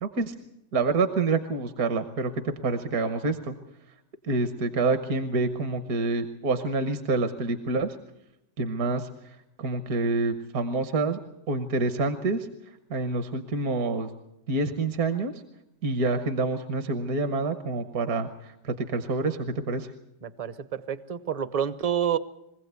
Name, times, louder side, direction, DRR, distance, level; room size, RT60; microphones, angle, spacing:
voice 1, 0.0-0.3 0.7-3.6 4.2-8.0 8.6-11.2 11.5-12.5 12.9-14.1 14.5-15.3 15.8-19.9, right 3 dB, 60° right, 9 dB, 1.5 m, -27 dB
voice 2, 20.2-22.2, right 9 dB, 35° right, 13 dB, 0.6 m, -28 dB
23.5 x 16.0 x 8.2 m, 0.87 s
omnidirectional pair, 1.8 m